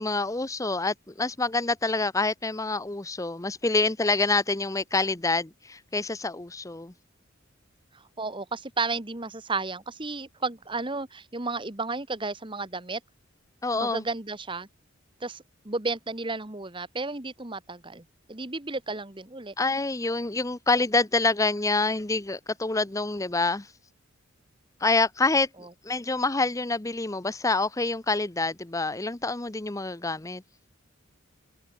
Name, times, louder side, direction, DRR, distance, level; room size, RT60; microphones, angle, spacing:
voice 1, 0.0-6.9 13.6-14.0 19.6-23.7 24.8-25.5 25.8-30.4, left 3 dB, 15° left, 0.7 m, -26 dB
voice 2, 7.9-13.0 13.7-14.7 15.2-19.5, right 3 dB, 25° right, 1.5 m, -33 dB
head